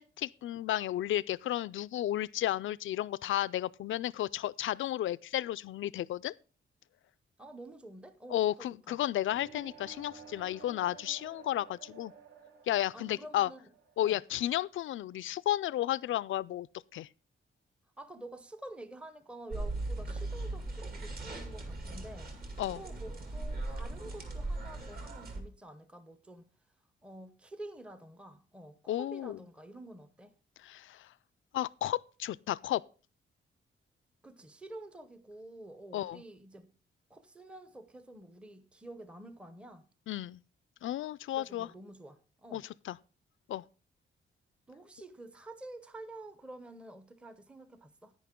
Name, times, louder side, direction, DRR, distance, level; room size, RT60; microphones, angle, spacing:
voice 1, 0.0-6.3 8.3-12.1 12.7-13.5 14.0-16.7 16.9-17.1 22.6-22.8 28.9-29.4 30.6-31.1 31.5-32.8 35.9-36.2 40.1-40.4 40.8-41.7 42.5-43.0 43.5-43.6, left 13 dB, 75° left, 0.4 m, -33 dB
voice 2, 7.4-9.0 12.9-13.6 14.0-14.2 18.0-22.3 22.7-26.5 27.0-30.3 34.2-36.7 37.1-39.9 41.3-42.6 44.7-48.1, right 1 dB, 5° right, 0.7 m, -49 dB
sound 1, 9.3-15.2, right 6 dB, 65° right, 1.9 m, -54 dB
sound 2, 19.5-25.4, right 2 dB, 45° right, 2.3 m, -38 dB
10.0 x 9.8 x 3.7 m
wide cardioid pair, 155°, 21 cm